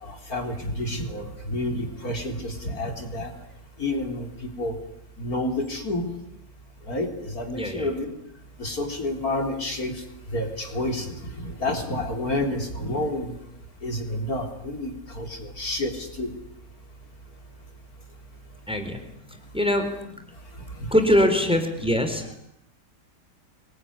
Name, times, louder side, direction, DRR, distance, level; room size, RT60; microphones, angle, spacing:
voice 1, 0.0-3.3 3.8-4.3 4.6-4.7 5.2-6.1 6.9-8.1 8.6-9.9 10.3-11.1 11.6-13.3 13.8-16.3, left 1 dB, 60° left, 5 dB, 4.2 m, -29 dB
voice 2, 7.5-7.9 18.7-19.0 19.5-19.9 20.9-22.4, left 1 dB, 5° right, 6 dB, 4.0 m, -22 dB
25.0 x 22.0 x 10.0 m, 0.77 s
omnidirectional pair, 1.8 m